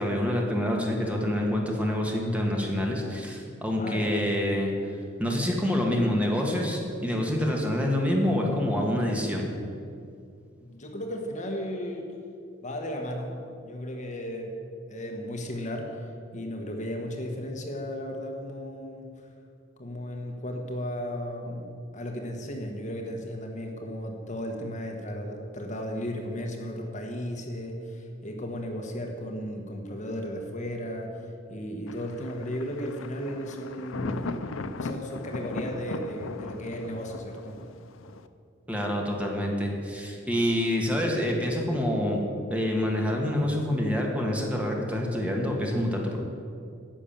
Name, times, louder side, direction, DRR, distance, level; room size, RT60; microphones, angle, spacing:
voice 1, 0.0-4.7 5.2-9.4 38.7-42.2 42.5-46.2, left 1 dB, 5° right, 0 dB, 1.5 m, -27 dB
voice 2, 3.8-4.1 10.6-12.2 12.6-14.6 14.9-19.3 19.8-34.4 34.7-37.6, equal, 40° left, 2 dB, 1.3 m, -35 dB
Thunder, 31.9-38.3, left 3 dB, 80° left, 0.6 m, -37 dB
10.5 x 6.3 x 8.8 m, 2.4 s
head